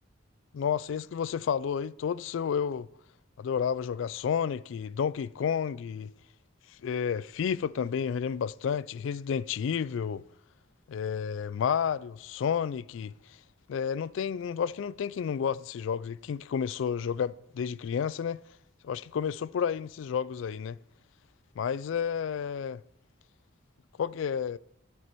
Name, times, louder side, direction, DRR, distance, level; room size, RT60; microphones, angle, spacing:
voice 1, 0.5-2.9 3.4-6.1 6.8-10.2 10.9-13.1 13.7-18.4 18.8-20.8 21.6-22.8 24.0-24.6, left 7 dB, 70° left, 0.3 m, -31 dB
9.4 x 9.3 x 4.5 m
head